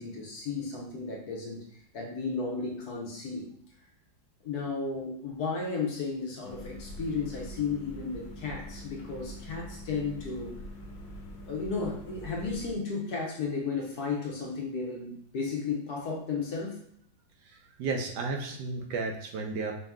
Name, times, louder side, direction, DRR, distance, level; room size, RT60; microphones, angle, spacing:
voice 1, 0.0-1.6 1.9-3.5 4.4-10.5 11.5-16.8, left 4 dB, 60° left, -1 dB, 1.3 m, -34 dB
sound 1, 6.4-12.7, equal, 85° left, 1.5 m, -44 dB
voice 2, 17.8-19.7, right 3 dB, 70° right, 3 dB, 1.1 m, -32 dB
5.3 x 2.8 x 3.6 m, 0.68 s
omnidirectional pair, 2.1 m